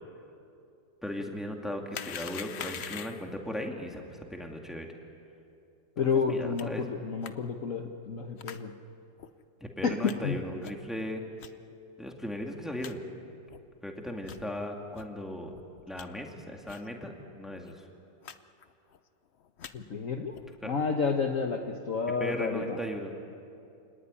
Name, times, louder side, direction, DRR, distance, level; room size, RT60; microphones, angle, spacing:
voice 1, 1.0-4.9 6.3-6.9 9.6-11.2 12.0-13.0 13.8-15.5 15.9-17.9 20.6-20.7 22.2-23.1, equal, ahead, 2 dB, 2.3 m, -37 dB
sound 1, 1.9-3.4 6.6-6.7 7.2-7.3 8.4-8.6 9.2-9.3 10.0-10.1 10.6-10.9 11.4-11.5 12.1-12.2 12.4-12.5 12.8-12.9 13.5-13.6 14.2-14.4 14.9-15.1 15.5-16.0 16.7-16.9 17.2-17.3 17.5-17.7 18.2-18.4 18.6-19.0 19.4-19.7 20.3-20.6, left 8 dB, 65° left, 0.6 m, -43 dB
voice 2, 6.0-8.7 9.8-10.4 19.7-20.3 20.6-22.8, left 5 dB, 45° left, 3 dB, 1.4 m, -30 dB
28.0 x 18.5 x 9.9 m, 2.6 s
omnidirectional pair, 2.1 m